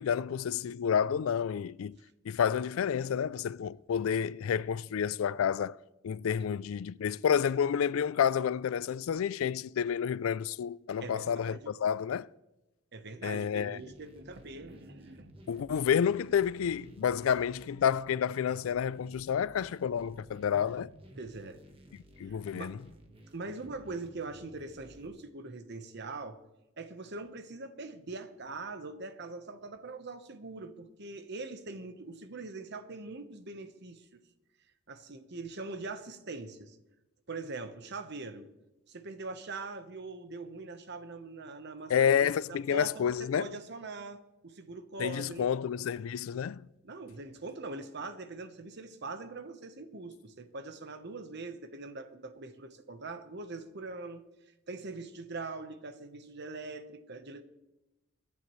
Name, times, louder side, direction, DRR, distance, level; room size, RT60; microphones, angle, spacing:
voice 1, 0.0-2.0 2.3-5.8 6.0-12.3 13.2-13.8 15.5-20.9 22.2-22.8 41.9-43.5 45.0-46.6, left 8 dB, 90° left, 0.4 m, -29 dB
voice 2, 11.0-11.7 12.9-15.3 21.2-21.6 22.3-22.8 23.3-26.4 26.8-34.2 34.9-36.8 37.3-38.5 38.9-45.5 46.8-54.2 54.7-57.4, right 3 dB, 55° right, 1.1 m, -42 dB
sound 1, 13.8-25.1, equal, 30° right, 1.5 m, -55 dB
23.5 x 10.5 x 3.2 m
head